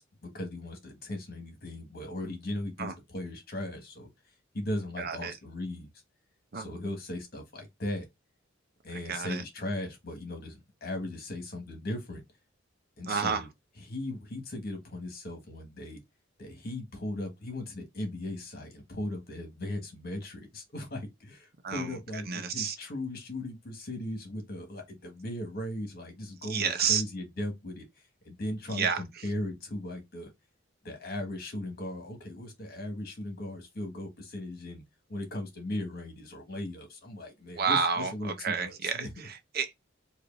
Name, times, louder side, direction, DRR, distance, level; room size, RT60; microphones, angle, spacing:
voice 1, 0.0-4.1 4.5-5.9 6.5-8.1 8.8-12.2 13.0-13.5 13.8-16.0 16.4-30.3 30.8-34.8 35.1-39.3, left 1 dB, 55° left, 1.7 m, -38 dB
voice 2, 5.0-5.3 6.5-6.7 9.1-9.4 13.0-13.4 21.6-21.9 22.3-22.8 26.5-27.0 28.7-29.0 37.6-39.7, right 6 dB, 55° right, 0.7 m, -30 dB
4.7 x 2.7 x 2.6 m
head